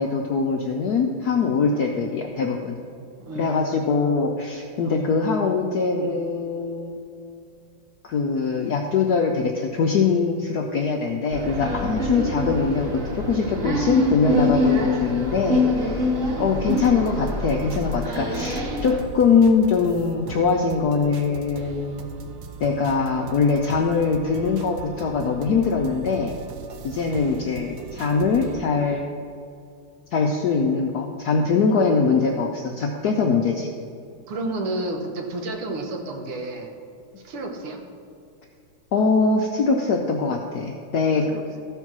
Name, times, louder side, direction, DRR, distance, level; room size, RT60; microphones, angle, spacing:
voice 1, 0.0-2.8 3.4-7.0 8.0-16.1 16.4-22.0 22.6-26.3 26.8-29.1 30.1-33.7 38.9-41.3, left 5 dB, 75° left, 2 dB, 0.9 m, -22 dB
voice 2, 3.2-4.0 4.8-5.1 16.4-16.6 18.2-18.5 27.1-27.4 34.3-36.7 37.2-37.8 41.2-41.6, right 2 dB, 85° right, 3 dB, 2.1 m, -32 dB
sound 1, 11.3-19.0, left 1 dB, 25° right, 2.2 m, -25 dB
sound 2, 16.7-28.6, right 4 dB, 70° right, 1.4 m, -39 dB
13.5 x 4.6 x 6.0 m, 2.5 s
omnidirectional pair, 2.4 m